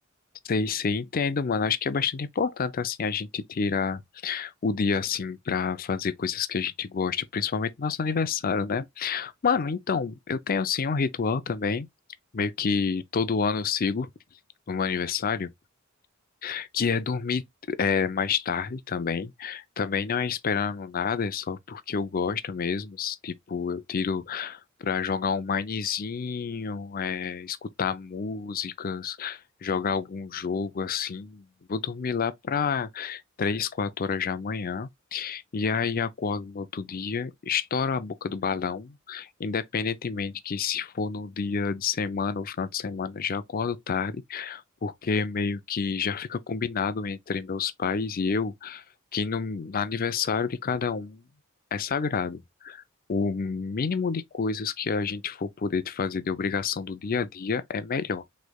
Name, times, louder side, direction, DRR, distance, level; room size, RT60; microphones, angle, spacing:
voice 1, 0.4-11.9 12.3-14.1 14.7-15.5 16.4-48.8 49.1-51.2 51.7-52.8 53.1-58.2, left 5 dB, 45° left, 0.5 m, -29 dB
6.3 x 3.3 x 2.3 m
head